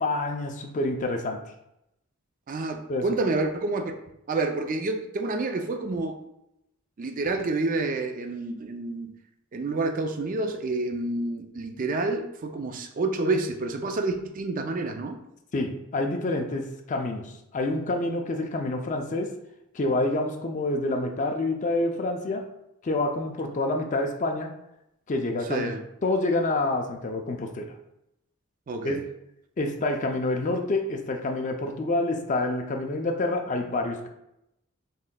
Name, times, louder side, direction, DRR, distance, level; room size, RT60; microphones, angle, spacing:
voice 1, 0.0-1.4 2.9-3.1 15.5-19.3 19.7-22.5 22.8-24.5 25.1-25.7 26.0-27.7 28.8-29.0 29.6-34.1, left 2 dB, 35° left, 3 dB, 0.4 m, -27 dB
voice 2, 2.5-3.9 4.3-6.2 7.0-9.1 9.5-15.2 25.5-25.8 28.7-29.0, right 3 dB, 40° right, 5 dB, 0.4 m, -28 dB
4.0 x 3.6 x 2.2 m, 0.83 s
head